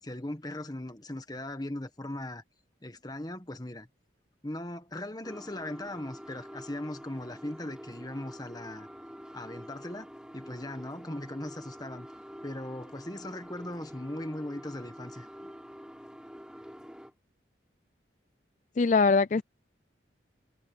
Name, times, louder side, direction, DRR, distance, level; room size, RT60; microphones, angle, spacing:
voice 1, 0.0-2.4 2.8-3.9 4.4-8.9 9.3-10.1 10.3-12.1 12.4-15.3, left 1 dB, 20° left, 1.4 m, -39 dB
sound 1, 5.2-17.1, equal, 5° right, 7.2 m, -47 dB
voice 2, 18.8-19.4, left 4 dB, 40° left, 0.4 m, -22 dB
head